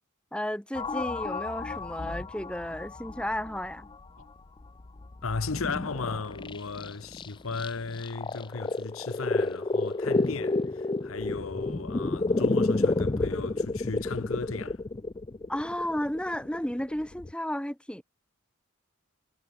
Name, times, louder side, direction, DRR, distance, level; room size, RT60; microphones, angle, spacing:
voice 1, 0.3-3.9 15.5-18.0, left 1 dB, 5° left, 2.1 m, -33 dB
sound 1, 0.7-4.2 4.6-17.3, left 2 dB, 25° left, 0.5 m, -31 dB
voice 2, 5.2-14.8, left 4 dB, 75° left, 1.0 m, -35 dB
head